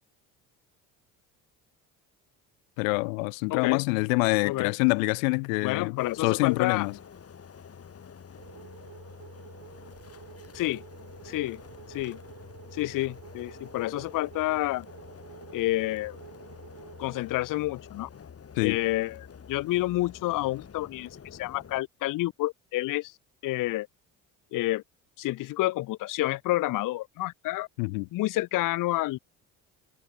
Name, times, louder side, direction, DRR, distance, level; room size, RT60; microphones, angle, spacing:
voice 1, 2.8-6.9 18.6-18.8 27.8-28.1, left 32 dB, 90° left, 1.8 m, -26 dB
voice 2, 3.5-3.8 4.4-4.8 5.6-6.9 10.5-10.8 11.2-11.6 11.9-12.2 12.7-14.9 15.5-16.2 17.0-18.1 18.6-23.2 23.4-23.9 24.5-24.8 25.2-27.7 28.1-29.2, left 17 dB, 55° left, 0.6 m, -29 dB
sound 1, 6.0-21.8, left 7 dB, 40° left, 3.6 m, -48 dB
sound 2, 8.4-17.2, right 12 dB, 60° right, 4.5 m, -50 dB
supercardioid pair, 70°, 38 cm